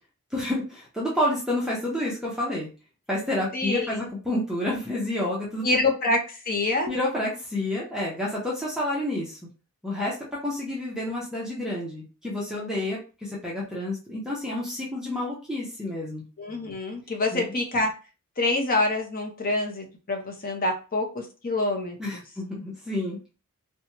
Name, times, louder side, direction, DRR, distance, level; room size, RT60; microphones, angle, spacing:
voice 1, 0.3-2.7 3.1-5.9 6.9-9.4 9.8-10.2 10.4-16.2 17.3-17.5 22.0-23.3, left 1 dB, ahead, -6 dB, 0.7 m, -29 dB
voice 2, 3.5-4.0 5.6-6.9 16.4-17.9 18.4-22.2, left 2 dB, 40° left, 2 dB, 0.7 m, -26 dB
2.9 x 2.2 x 2.8 m, 0.33 s
head